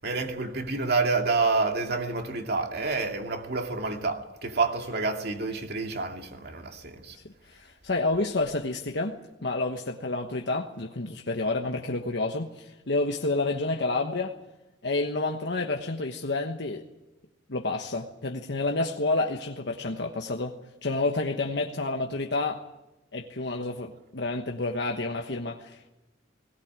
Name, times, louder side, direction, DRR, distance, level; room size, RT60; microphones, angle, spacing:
voice 1, 0.0-7.2, right 3 dB, 60° right, 2.5 m, -28 dB
voice 2, 7.1-14.4 14.8-16.8 17.5-20.5 20.8-22.6 23.1-25.9, left 2 dB, 65° left, 1.2 m, -29 dB
20.0 x 18.5 x 9.7 m
head